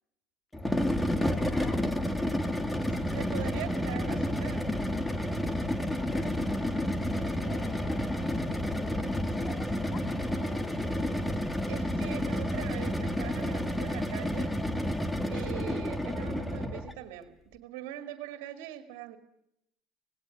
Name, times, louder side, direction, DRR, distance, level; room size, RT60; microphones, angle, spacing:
sound 1, 0.5-17.0, left 1 dB, 5° left, 1.7 m, -30 dB
voice 1, 1.1-1.8 5.8-6.8 7.1-10.9, left 5 dB, 35° left, 5 dB, 3.0 m, -48 dB
voice 2, 3.1-4.7 11.7-14.5 15.3-19.2, right 12 dB, 80° right, 8 dB, 2.2 m, -42 dB
18.5 x 18.0 x 9.9 m, 0.79 s
supercardioid pair, 115°, 0 cm